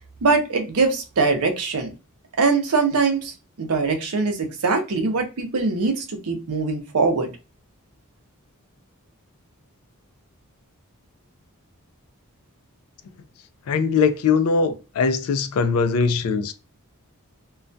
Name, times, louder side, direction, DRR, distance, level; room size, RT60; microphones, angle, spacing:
voice 1, 0.2-1.9 2.4-3.3 3.6-7.3, right 4 dB, 80° right, 0.6 m, -22 dB
voice 2, 13.7-16.5, left 5 dB, 75° left, 0.3 m, -21 dB
2.3 x 2.1 x 2.5 m
head